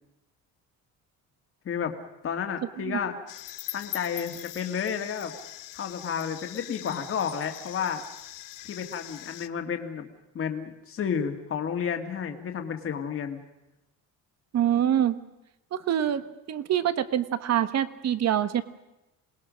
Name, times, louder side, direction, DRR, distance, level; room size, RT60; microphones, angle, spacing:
voice 1, 2.2-3.2 3.7-5.3 5.7-8.0 8.7-10.1 10.3-13.4, left 7 dB, 35° left, 5 dB, 2.1 m, -31 dB
sound 1, 3.3-9.5, left 15 dB, 60° left, 0.9 m, -42 dB
voice 2, 14.5-15.2 15.7-18.6, right 10 dB, 45° right, 13 dB, 1.3 m, -25 dB
27.5 x 20.0 x 6.4 m, 0.94 s
cardioid pair, 160°, 36 cm